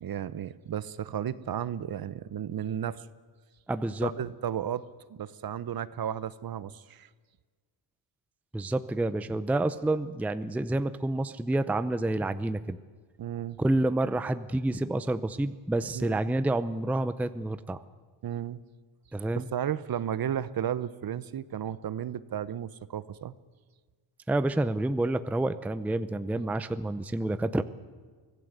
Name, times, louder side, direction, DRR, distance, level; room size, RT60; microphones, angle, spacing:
voice 1, 0.0-3.0 4.0-7.1 13.2-13.6 15.9-16.2 18.2-18.6 19.4-23.3 26.3-26.5, right 9 dB, 45° right, 17 dB, 0.8 m, -34 dB
voice 2, 3.7-4.1 8.5-12.8 13.6-17.8 19.1-19.5 24.3-27.6, right 2 dB, 5° right, 12 dB, 0.6 m, -28 dB
24.5 x 17.0 x 8.0 m, 1.5 s
cardioid pair, 140°, 50 cm